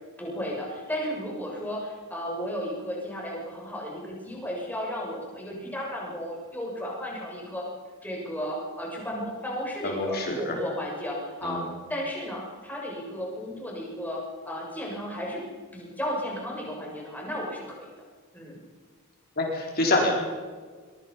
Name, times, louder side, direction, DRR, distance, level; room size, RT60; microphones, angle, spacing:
voice 1, 0.2-7.7 8.0-11.6 11.9-15.4 15.7-17.9 18.3-18.6, equal, 10° left, -3 dB, 6.7 m, -34 dB
voice 2, 9.8-10.6 11.4-11.7 19.4-20.1, left 2 dB, 50° left, -1 dB, 4.4 m, -26 dB
22.5 x 22.5 x 5.5 m, 1.5 s
head